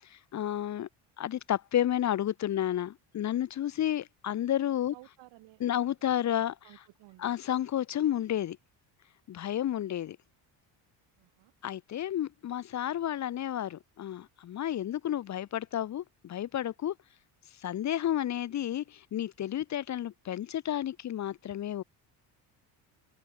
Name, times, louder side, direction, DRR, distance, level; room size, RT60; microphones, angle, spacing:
voice 1, 0.1-0.9 1.2-4.9 5.6-6.5 7.2-8.6 9.3-10.2 11.6-16.9 17.6-21.8, left 11 dB, 40° left, 0.8 m, -31 dB
voice 2, 4.9-5.6 6.0-7.5 11.2-11.5, right 19 dB, 80° right, 8.0 m, -56 dB
cardioid pair, 120°, 41 cm